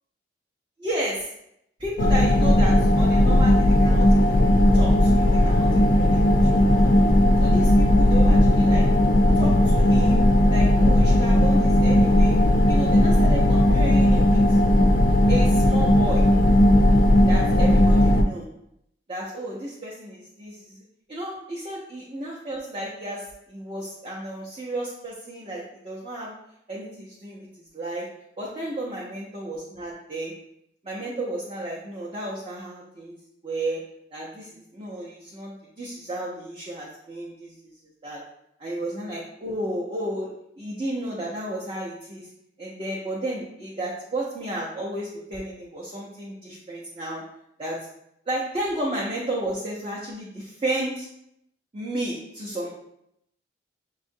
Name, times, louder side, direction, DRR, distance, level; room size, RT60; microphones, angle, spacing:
voice 1, 0.8-1.3 1.8-7.1 7.4-8.8 9.3-10.2 10.5-12.4 12.7-14.6 15.3-16.2 17.3-18.5 19.1-20.8 21.1-26.3 26.7-27.5 27.7-28.0 28.4-30.3 30.8-33.2 33.4-33.8 34.1-37.5 38.0-38.2 38.6-40.3 40.6-42.3 42.6-47.2 47.6-47.8 48.3-51.1 51.7-52.7, right 1 dB, 30° right, -5 dB, 0.6 m, -32 dB
sound 1, 2.0-18.2, left 1 dB, 45° left, 0.3 m, -17 dB
6.3 x 2.4 x 2.6 m, 0.78 s
head